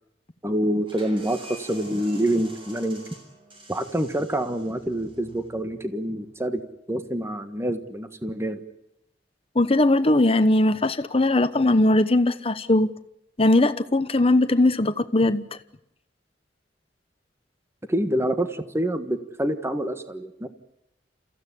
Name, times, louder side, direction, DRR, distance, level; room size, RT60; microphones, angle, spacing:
voice 1, 0.4-3.0 3.7-6.6 6.9-8.6 17.9-20.5, right 1 dB, 15° right, 1.5 m, -26 dB
sound 1, 0.8-6.3, right 1 dB, 30° right, 7.1 m, -47 dB
voice 2, 9.5-12.9 13.4-15.4, left 2 dB, 35° left, 1.0 m, -20 dB
30.0 x 15.5 x 9.9 m
head